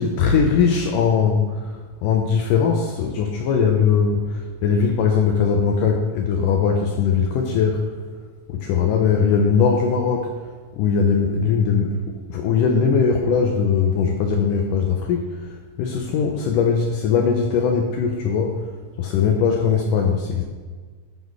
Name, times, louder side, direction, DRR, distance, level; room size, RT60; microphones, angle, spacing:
voice 1, 0.0-1.7 2.0-7.8 8.5-10.3 10.8-15.5 15.8-18.6 19.0-20.4, left 6 dB, 80° left, 2 dB, 1.9 m, -20 dB
12.5 x 4.1 x 4.7 m, 1.5 s
omnidirectional pair, 4.5 m